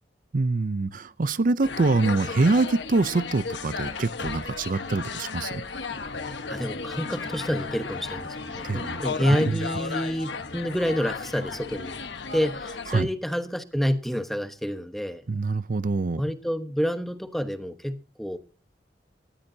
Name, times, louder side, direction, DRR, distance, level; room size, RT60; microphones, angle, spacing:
voice 1, 0.3-5.6 8.6-9.6 12.9-13.1 15.3-16.2, right 3 dB, 50° right, 0.5 m, -25 dB
sound 1, 1.6-13.0, left 4 dB, 80° left, 1.3 m, -34 dB
sound 2, 5.9-12.5, left 1 dB, 60° left, 1.1 m, -45 dB
voice 2, 6.5-12.0 12.3-15.2 16.2-18.4, equal, ahead, 1.0 m, -28 dB
19.0 x 13.5 x 2.7 m
head